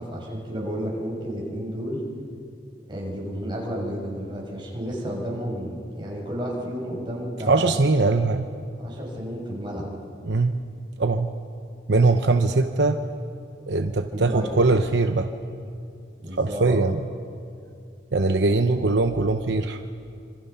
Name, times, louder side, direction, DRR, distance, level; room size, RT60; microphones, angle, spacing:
voice 1, 0.0-2.0 2.9-7.7 8.8-9.9 14.1-14.5 16.2-16.8 18.5-18.8, equal, 25° right, -2 dB, 6.3 m, -32 dB
voice 2, 7.5-8.5 10.2-10.6 11.0-11.3 11.9-13.0 13.7-15.3 16.4-17.0 18.1-19.8, right 3 dB, 70° right, 6 dB, 0.9 m, -21 dB
27.5 x 26.5 x 5.7 m, 2.4 s
head